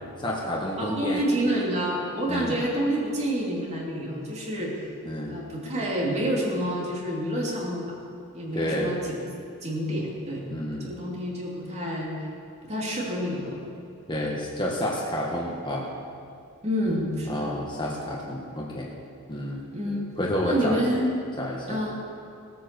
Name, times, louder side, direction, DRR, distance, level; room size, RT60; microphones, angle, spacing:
voice 1, 0.2-1.2 2.3-2.6 5.0-5.4 8.5-8.9 10.5-10.9 14.1-15.9 16.9-17.0 17.3-18.9 19.3-19.6 20.2-20.8 21.4-21.8, left 1 dB, 20° left, -3 dB, 1.5 m, -29 dB
voice 2, 0.8-4.7 5.3-7.9 8.3-9.2 9.6-10.5 10.8-12.1 12.7-13.6 14.2-14.3 16.6-17.5 19.7-20.1 20.4-21.2 21.7-22.0, equal, 30° right, -4 dB, 2.9 m, -28 dB
17.0 x 8.5 x 6.9 m, 2.5 s
head